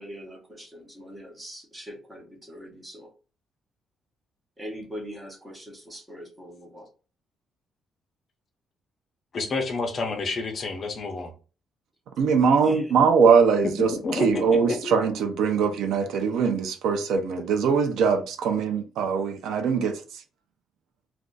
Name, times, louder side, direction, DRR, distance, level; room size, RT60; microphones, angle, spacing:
voice 1, 0.0-3.1 4.6-6.9 12.6-12.9, equal, 10° right, 0.9 m, -42 dB
voice 2, 9.3-11.3 13.9-14.9, left 3 dB, 35° left, 0.6 m, -29 dB
voice 3, 12.2-20.0, right 5 dB, 80° right, 0.5 m, -22 dB
2.4 x 2.3 x 3.8 m
cardioid pair, 160°, 0 cm